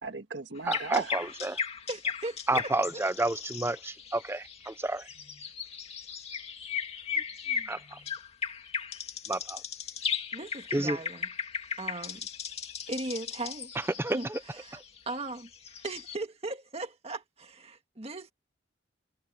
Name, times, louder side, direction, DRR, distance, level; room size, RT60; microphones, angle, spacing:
voice 1, 0.0-1.2, right 3 dB, 70° right, 1.8 m, -36 dB
sound 1, 0.6-16.2, left 7 dB, 35° left, 2.4 m, -37 dB
voice 2, 0.6-1.6 2.5-5.0 7.7-7.8 9.3-9.6 10.7-11.0 14.0-14.2, right 2 dB, 15° right, 0.6 m, -30 dB
voice 3, 1.9-3.1 7.1-7.8 10.3-11.3 11.8-12.3 12.9-13.7 14.1-15.5 15.8-18.3, right 2 dB, 35° right, 1.8 m, -38 dB
head